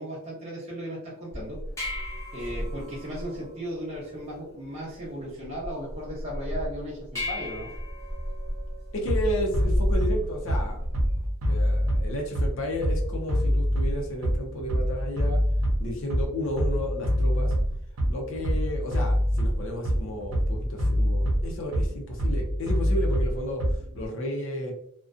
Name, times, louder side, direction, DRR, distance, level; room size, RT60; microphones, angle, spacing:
voice 1, 0.0-1.6 2.3-7.7, equal, 30° right, -7 dB, 0.6 m, -36 dB
sound 1, 1.3-11.3, equal, 15° left, 0.6 m, -35 dB
voice 2, 8.9-10.8 11.5-15.4 15.8-17.5 18.1-23.6 23.9-24.7, left 1 dB, 60° left, 0 dB, 0.5 m, -32 dB
Bass drum, 9.1-24.1, equal, 85° right, 0.7 m, -25 dB
2.4 x 2.2 x 2.4 m, 0.74 s
head